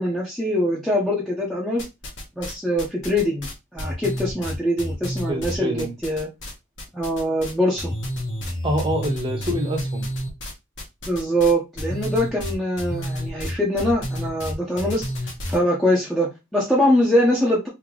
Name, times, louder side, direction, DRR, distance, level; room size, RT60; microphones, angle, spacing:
voice 1, 0.0-1.9 2.4-3.5 3.7-6.3 6.9-7.9 11.1-15.1 15.5-17.7, equal, ahead, 0.7 m, -23 dB
sound 1, 1.8-2.5 2.8-6.5 6.8-7.5 7.8-15.6, equal, 60° left, 1.5 m, -30 dB
voice 2, 5.3-6.0 8.6-10.1, equal, 25° right, 0.9 m, -26 dB
3.7 x 2.8 x 3.2 m
head